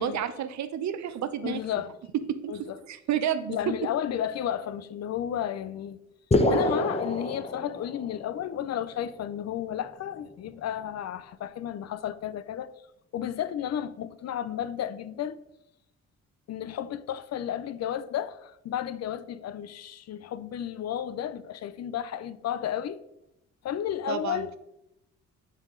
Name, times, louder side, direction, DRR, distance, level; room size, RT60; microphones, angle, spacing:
voice 1, 0.0-1.6 2.4-2.5 2.9-3.8 24.1-24.6, right 9 dB, 65° right, 0.8 m, -30 dB
voice 2, 1.4-1.9 2.5-2.8 3.5-6.0 6.5-12.7 13.1-15.4 16.5-23.0 23.6-24.5, left 10 dB, 60° left, 0.5 m, -32 dB
sound 1, 6.3-8.2, left 1 dB, 20° left, 0.8 m, -26 dB
7.6 x 6.4 x 3.8 m
cardioid pair, 90°, 30 cm